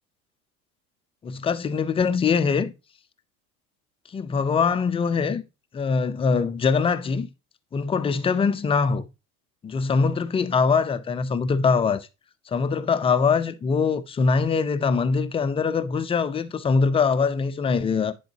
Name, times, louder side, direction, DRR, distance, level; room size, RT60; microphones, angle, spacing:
voice 1, 1.2-2.7 4.1-5.4 5.7-7.3 7.7-9.1 9.6-12.1 12.5-18.1, left 5 dB, 15° left, 0.4 m, -23 dB
10.0 x 3.8 x 2.7 m
figure-of-eight pair, 70°, 44 cm